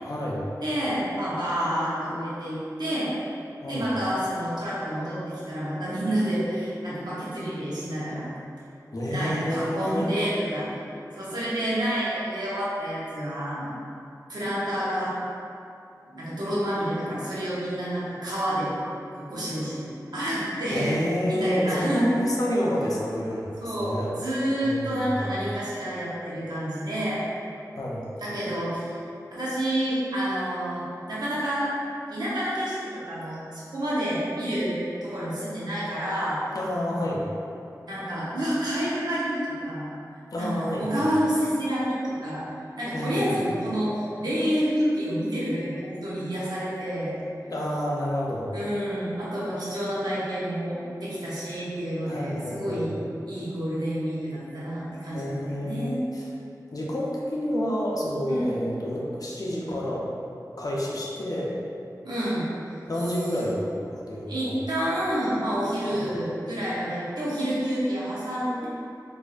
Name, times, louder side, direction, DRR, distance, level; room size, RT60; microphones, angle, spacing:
voice 1, 0.0-0.4 3.6-3.9 8.9-10.1 20.7-24.1 24.6-25.1 27.7-28.1 36.5-37.3 40.3-41.1 42.9-43.5 47.5-48.5 52.1-52.9 55.1-56.3 56.7-60.0 60.6-61.6 62.8-64.6 65.9-66.2, equal, 60° left, -4 dB, 0.6 m, -29 dB
voice 2, 0.6-3.1 3.7-8.3 9.1-10.7 11.2-13.7 14.3-15.1 16.1-18.7 19.2-21.0 21.3-22.0 23.6-27.2 28.2-29.0 29.3-31.7 32.1-36.4 37.9-39.9 40.4-42.4 42.8-47.1 48.5-52.9 53.3-56.1 58.3-58.5 62.0-62.5 64.3-68.7, equal, 85° right, -9 dB, 0.9 m, -29 dB
4.2 x 2.6 x 2.4 m, 2.6 s
wide cardioid pair, 50°, 7 cm